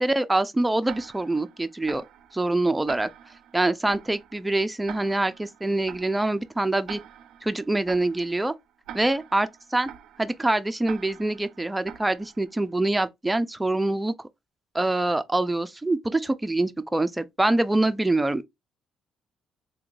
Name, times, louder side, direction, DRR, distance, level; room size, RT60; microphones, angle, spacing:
voice 1, 0.0-2.0 2.3-3.1 3.5-7.0 7.4-8.5 8.9-9.9 10.2-14.1 14.7-18.4, right 2 dB, 10° right, 0.4 m, -25 dB
Tick-tock, 0.9-12.7, right 9 dB, 85° right, 0.3 m, -46 dB
3.7 x 2.9 x 2.4 m
cardioid pair, 90°, 0 cm